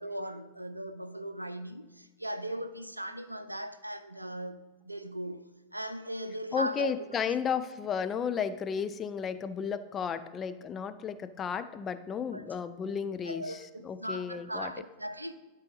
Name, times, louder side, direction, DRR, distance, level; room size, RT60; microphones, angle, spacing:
voice 1, 0.0-6.9 12.3-12.5 13.2-15.3, right 1 dB, 85° right, 0.5 m, -38 dB
voice 2, 6.5-14.7, left 7 dB, 25° left, 0.4 m, -33 dB
12.0 x 4.1 x 4.0 m
figure-of-eight pair, 90°, 0 cm